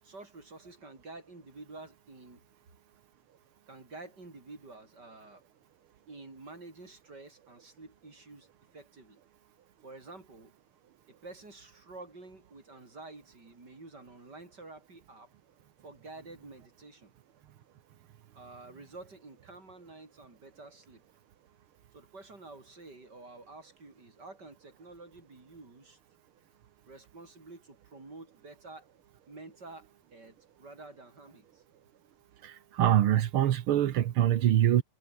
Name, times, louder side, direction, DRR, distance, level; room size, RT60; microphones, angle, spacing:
voice 1, 0.0-2.4 3.7-5.4 6.1-9.2 9.8-10.5 11.1-15.3 15.8-17.1 18.3-21.0 21.9-26.0 26.9-28.9 29.3-31.6, right 3 dB, 30° right, 5.0 m, -49 dB
voice 2, 32.4-34.8, right 11 dB, 65° right, 1.4 m, -24 dB
omnidirectional pair, 3.5 m